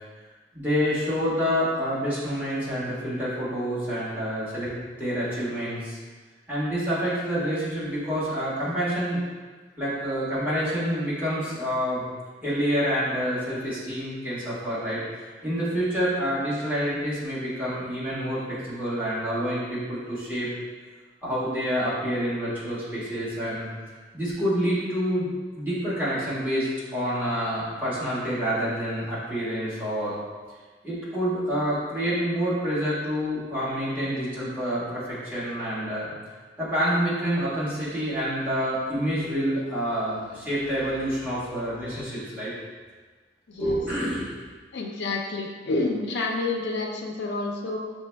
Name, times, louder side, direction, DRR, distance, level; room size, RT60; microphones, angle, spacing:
voice 1, 0.5-6.0 6.5-9.2 9.8-12.0 12.4-20.5 21.2-23.7 24.1-30.2 30.8-36.1 36.6-42.5 43.5-44.4, equal, 10° right, -11 dB, 1.4 m, -27 dB
voice 2, 43.5-43.8 44.7-47.8, left 3 dB, 60° left, 0 dB, 0.4 m, -29 dB
6.1 x 3.1 x 2.2 m, 1.4 s
head